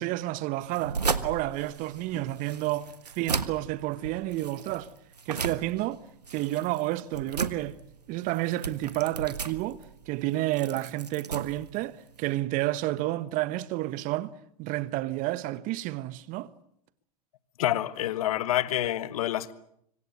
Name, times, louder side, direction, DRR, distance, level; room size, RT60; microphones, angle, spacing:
voice 1, 0.0-2.9 3.1-4.9 5.3-6.0 6.3-7.8 8.1-9.8 10.1-14.3 14.6-16.5, right 16 dB, 40° right, 1.2 m, -30 dB
sound 1, 0.6-12.3, right 4 dB, 90° right, 1.4 m, -36 dB
voice 2, 17.6-19.5, left 13 dB, 65° left, 1.5 m, -27 dB
26.0 x 24.5 x 8.0 m
hypercardioid pair, 95°, 20 cm